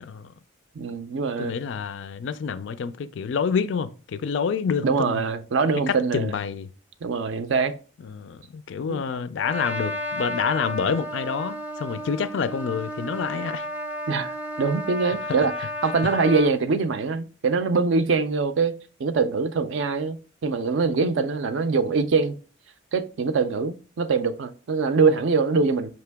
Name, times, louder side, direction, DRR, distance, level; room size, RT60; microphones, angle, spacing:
voice 1, 0.8-1.5 4.8-6.4 7.0-7.7 8.9-9.0 14.1-14.3 14.6-15.5 15.8-18.7 19.0-22.4 22.9-25.9, right 4 dB, 65° right, 0.4 m, -23 dB
voice 2, 1.4-5.2 5.9-6.7 8.0-13.7, left 6 dB, 60° left, 0.3 m, -28 dB
Trumpet, 9.4-16.5, left 1 dB, 10° right, 0.6 m, -32 dB
5.2 x 2.9 x 3.3 m
head